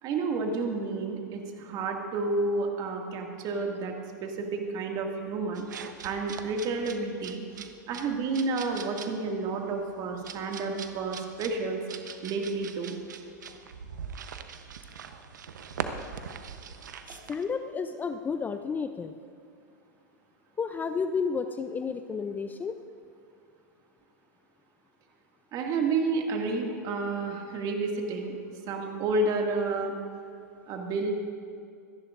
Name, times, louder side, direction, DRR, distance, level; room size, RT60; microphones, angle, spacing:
voice 1, 0.0-3.9 4.2-5.8 6.0-7.4 7.9-11.8 12.2-13.0 25.5-28.4 28.7-30.0 30.7-31.1, right 3 dB, 40° right, 2 dB, 2.1 m, -30 dB
sound 1, 5.5-17.4, right 7 dB, 80° right, 0.9 m, -42 dB
voice 2, 17.1-19.1 20.6-22.7, left 5 dB, 20° left, 9 dB, 0.5 m, -31 dB
25.5 x 10.5 x 2.6 m, 2.5 s
hypercardioid pair, 110°, 10 cm